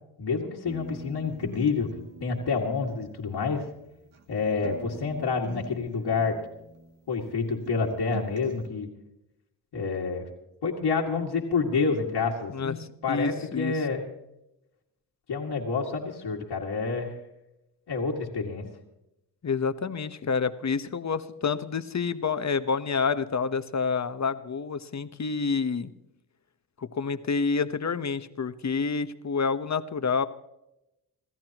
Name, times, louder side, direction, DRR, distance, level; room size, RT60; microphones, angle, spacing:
voice 1, 0.2-1.9 2.2-3.7 4.3-6.4 7.1-8.9 9.7-10.3 10.6-12.8 13.0-14.1 15.3-17.1 17.9-18.7, left 4 dB, 75° left, -5 dB, 2.2 m, -28 dB
sound 1, 0.7-4.3 4.6-7.4 7.6-8.7, right 2 dB, 85° right, 1.8 m, -44 dB
voice 2, 12.5-13.7 19.4-25.9 26.8-30.3, left 5 dB, 40° left, 11 dB, 1.1 m, -28 dB
27.5 x 14.0 x 3.0 m, 0.89 s
cardioid pair, 65°, 42 cm